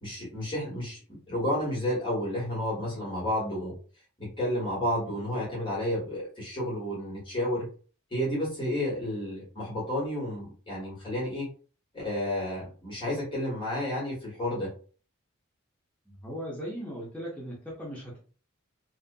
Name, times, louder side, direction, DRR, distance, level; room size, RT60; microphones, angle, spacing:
voice 1, 0.0-3.7 4.2-7.7 8.1-11.5 11.9-14.7, left 1 dB, 25° left, -7 dB, 1.2 m, -31 dB
voice 2, 16.1-18.2, equal, 5° left, -6 dB, 0.6 m, -38 dB
2.6 x 2.4 x 2.2 m, 0.40 s
head